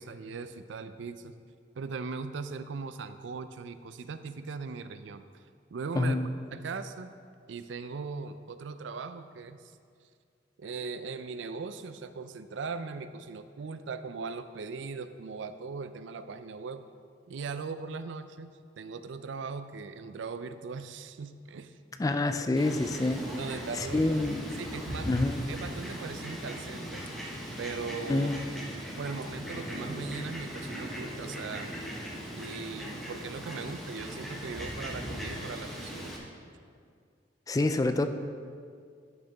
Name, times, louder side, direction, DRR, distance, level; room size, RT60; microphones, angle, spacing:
voice 1, 0.0-1.3 1.8-5.4 5.7-6.2 6.5-7.1 7.5-9.7 10.6-16.8 17.3-21.8 23.4-24.1 24.6-25.2 25.5-27.1 27.6-28.4 29.0-31.7 32.4-36.1, right 4 dB, 75° right, 11 dB, 0.4 m, -39 dB
voice 2, 6.0-6.3 22.0-23.2 23.8-24.4 25.1-25.4 28.1-28.4 37.5-38.1, left 2 dB, 20° left, 8 dB, 0.3 m, -27 dB
Fowl, 22.6-36.2, equal, ahead, 1.2 m, -39 dB
11.5 x 6.5 x 3.4 m, 2.2 s
head